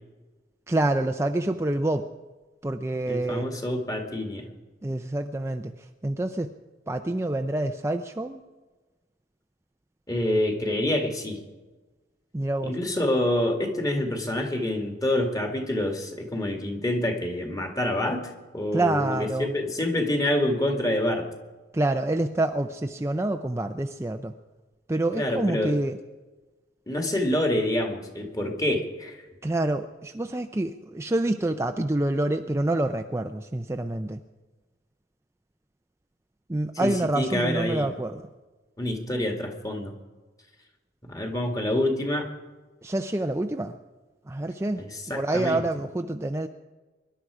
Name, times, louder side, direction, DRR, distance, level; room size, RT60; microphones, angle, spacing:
voice 1, 0.7-2.0 2.6-3.4 4.8-5.7 6.0-6.5 6.9-8.4 12.3-12.8 18.7-19.5 21.7-24.3 24.9-26.0 29.4-34.2 36.5-38.2 42.8-43.8 44.3-44.8 45.1-46.5, right 1 dB, 15° right, 6 dB, 0.5 m, -27 dB
voice 2, 3.1-4.5 10.1-11.4 12.6-21.3 25.2-25.8 26.9-29.2 36.7-37.9 38.8-39.9 41.0-42.3 44.8-45.7, left 1 dB, 20° left, 3 dB, 2.0 m, -27 dB
24.0 x 11.5 x 4.9 m, 1.2 s
head